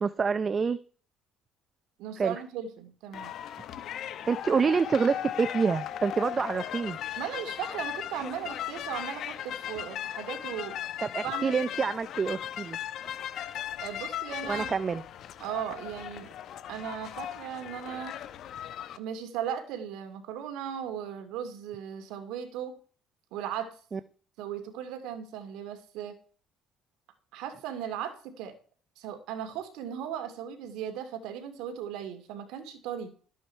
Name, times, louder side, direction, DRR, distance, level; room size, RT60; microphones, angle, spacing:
voice 1, 0.0-0.8 2.2-2.3 4.3-7.0 11.1-12.8 14.5-15.0 23.9-24.0, right 5 dB, 30° right, 13 dB, 0.7 m, -27 dB
voice 2, 2.0-3.3 7.2-10.9 11.2-11.6 13.8-14.7 15.4-16.3 16.7-18.2 19.0-22.8 23.3-23.8 24.4-26.2 27.3-28.6 29.0-33.1, right 9 dB, 80° right, 8 dB, 2.4 m, -37 dB
sound 1, 3.1-19.0, left 10 dB, 60° left, 1.1 m, -37 dB
13.5 x 8.5 x 4.6 m, 0.41 s
cardioid pair, 110°, 0 cm